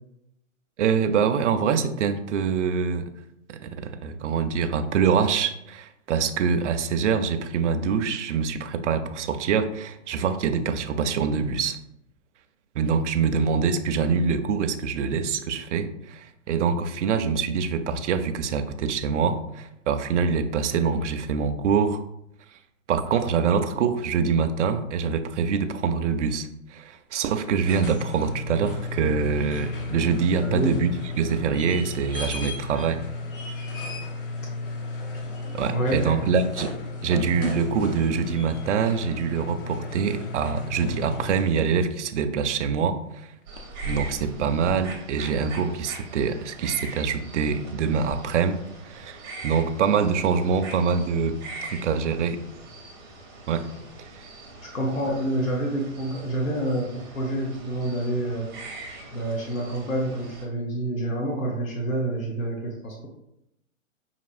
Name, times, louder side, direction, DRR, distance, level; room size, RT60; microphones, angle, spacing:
voice 1, 0.8-3.1 3.5-11.8 12.8-22.0 22.9-30.9 31.2-33.0 35.5-36.7 37.0-43.3 43.8-48.6 48.8-52.4 53.5-53.6, right 6 dB, 65° right, 8 dB, 0.5 m, -25 dB
sound 1, 27.4-41.8 43.6-43.7, left 3 dB, 40° left, 0.7 m, -34 dB
voice 2, 30.4-30.8 35.7-36.2 54.7-58.5 59.1-63.1, right 1 dB, 80° left, 0 dB, 1.1 m, -27 dB
sound 2, 43.5-60.5, right 2 dB, 15° right, 0.6 m, -41 dB
4.9 x 2.9 x 2.5 m, 0.81 s
hypercardioid pair, 150°, 40 cm